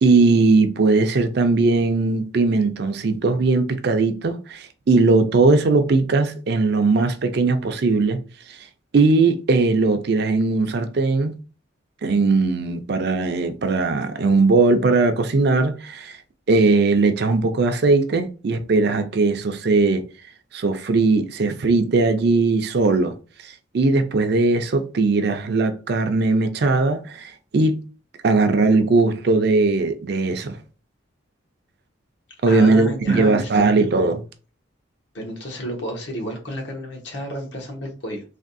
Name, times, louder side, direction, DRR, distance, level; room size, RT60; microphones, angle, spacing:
voice 1, 0.0-8.2 8.5-8.6 8.9-11.3 12.0-16.2 16.5-20.0 20.5-23.1 23.7-27.8 28.2-30.6 32.4-34.2, right 3 dB, 55° right, 0.4 m, -19 dB
voice 2, 32.5-33.6 35.1-38.2, equal, 60° left, 1.0 m, -31 dB
3.5 x 2.3 x 2.5 m
head